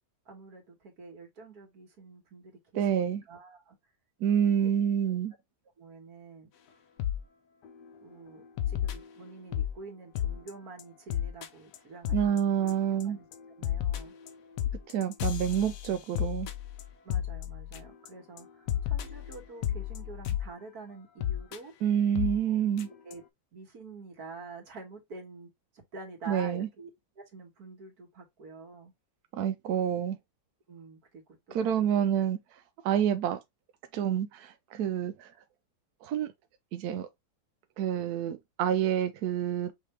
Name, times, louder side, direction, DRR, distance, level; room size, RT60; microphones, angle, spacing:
voice 1, 0.3-2.6 2.9-3.8 4.6-4.7 5.8-6.5 8.0-12.7 13.0-13.2 13.6-14.1 17.0-21.7 22.5-22.6 23.0-23.2 23.5-26.9 27.2-28.9 30.7-31.2 31.5-32.0, right 3 dB, 55° right, 2.1 m, -47 dB
voice 2, 2.8-3.2 4.2-5.3 12.1-13.2 14.9-16.5 21.8-22.9 26.3-26.7 29.3-30.2 31.5-33.4 33.9-35.3 36.0-36.3 36.7-37.1 37.8-39.7, right 9 dB, 70° right, 0.9 m, -28 dB
sound 1, 7.0-7.2 7.6-7.9 8.6-9.8 10.2-10.5 10.8-10.9 11.1-11.5 11.7-11.8 12.0-12.4 12.7-13.0 13.3-18.1 18.4-18.5 18.7-20.5 21.2-21.6 22.2-22.4 22.8-22.9 23.1-23.2, left 11 dB, 70° left, 1.2 m, -32 dB
5.8 x 2.7 x 3.3 m
omnidirectional pair, 2.1 m